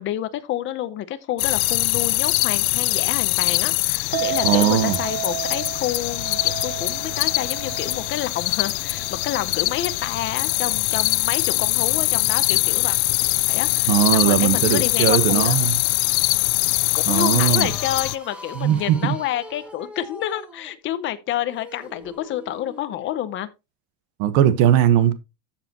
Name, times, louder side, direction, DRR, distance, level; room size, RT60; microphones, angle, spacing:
voice 1, 0.0-13.0 13.5-15.6 16.9-23.5, left 12 dB, 30° left, 0.7 m, -29 dB
sound 1, 1.4-18.2, left 24 dB, 75° left, 0.6 m, -22 dB
Chink clink, 4.1-10.4, right 18 dB, 70° right, 0.7 m, -34 dB
voice 2, 4.4-5.0 13.9-15.8 17.1-17.7 18.5-19.1 24.2-25.1, right 11 dB, 50° right, 1.3 m, -19 dB
sound 2, 17.4-23.0, left 1 dB, 5° right, 1.3 m, -42 dB
13.0 x 7.2 x 2.9 m
cardioid pair, 175°, 42 cm